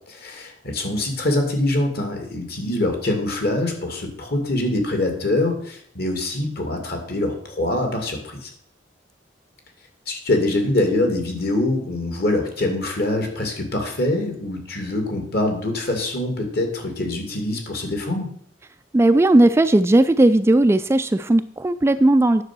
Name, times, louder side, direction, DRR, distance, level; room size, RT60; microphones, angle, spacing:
voice 1, 0.1-8.5 10.1-18.3, left 1 dB, 55° left, 4 dB, 2.5 m, -24 dB
voice 2, 18.9-22.4, right 1 dB, 15° right, 11 dB, 0.3 m, -16 dB
9.8 x 6.9 x 6.1 m, 0.64 s
head